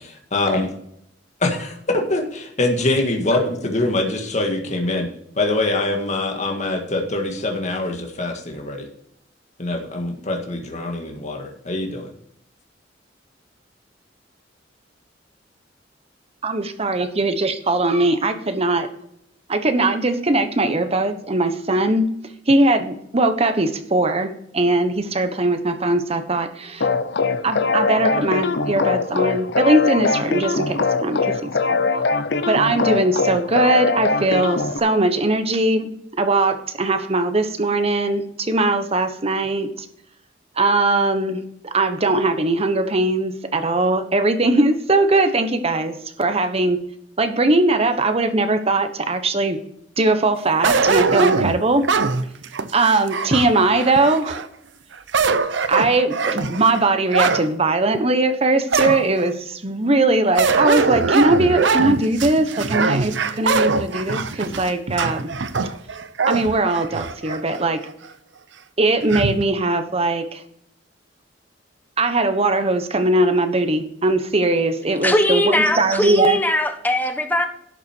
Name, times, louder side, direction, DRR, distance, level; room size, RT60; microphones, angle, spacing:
voice 1, 0.3-0.7 1.4-5.1 5.4-8.9 9.6-12.1, left 2 dB, 40° left, 2 dB, 1.9 m, -23 dB
voice 2, 16.4-18.9 19.5-22.1 22.5-26.9 27.4-31.8 32.5-39.9 40.6-46.8 47.2-49.6 50.0-51.9 52.7-54.4 55.7-65.3 66.3-67.8 68.8-70.4 72.0-76.4, right 2 dB, 35° right, 9 dB, 1.1 m, -20 dB
sound 1, 26.8-34.8, left 4 dB, 65° left, 0.8 m, -22 dB
sound 2, 50.6-54.5 54.9-57.5 57.9-58.0 58.7-59.3 60.4-67.4 67.9-68.0 69.1-69.4, right 4 dB, 70° right, 0.8 m, -22 dB
voice 3, 75.0-77.5, left 1 dB, 10° left, 6 dB, 1.2 m, -20 dB
12.0 x 7.0 x 4.5 m, 0.71 s
head